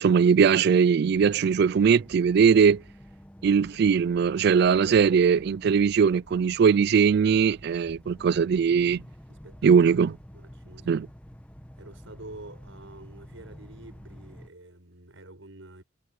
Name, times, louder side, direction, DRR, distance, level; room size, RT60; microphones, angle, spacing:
voice 1, 0.0-2.8 3.4-9.0 9.6-10.1 10.9-11.1, right 6 dB, 55° right, 0.3 m, -20 dB
sound 1, 1.1-14.5, equal, 5° left, 1.2 m, -48 dB
voice 2, 9.3-10.1 10.3-11.0 11.8-15.8, right 2 dB, 80° right, 5.8 m, -47 dB
head